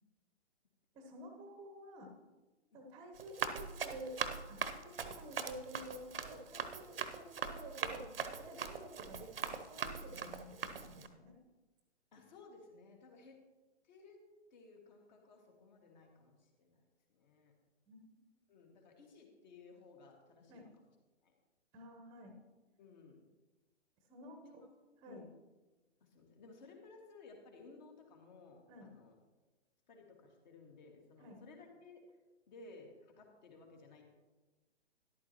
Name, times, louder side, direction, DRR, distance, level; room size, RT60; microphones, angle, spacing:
voice 1, 0.9-2.1 2.7-4.2 4.5-11.4 17.9-18.2 20.5-20.7 21.7-22.3 24.1-24.6 25.0-25.2 28.7-28.9 31.2-31.4, right 1 dB, 10° right, 3 dB, 1.0 m, -51 dB
Run, 3.2-11.1, right 6 dB, 55° right, 0.9 m, -41 dB
voice 2, 12.1-13.4 13.8-14.2 14.5-16.8 17.1-17.5 18.5-20.7 21.2-21.3 22.8-23.2 24.4-24.6 25.1-25.3 26.0-29.1 29.9-32.0 32.5-34.1, left 3 dB, 40° left, 2 dB, 2.1 m, -58 dB
13.0 x 11.5 x 3.0 m, 1.2 s
figure-of-eight pair, 125°, 34 cm